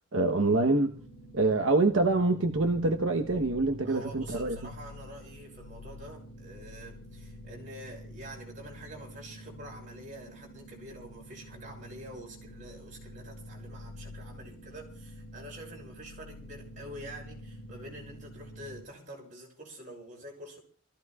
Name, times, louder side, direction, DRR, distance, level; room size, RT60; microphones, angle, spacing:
voice 1, 0.1-1.0 1.3-4.6, right 2 dB, 80° right, 1.0 m, -25 dB
sound 1, 0.9-18.8, equal, 60° left, 2.7 m, -47 dB
voice 2, 3.8-20.6, right 1 dB, 40° right, 5.9 m, -47 dB
27.0 x 15.0 x 2.4 m
head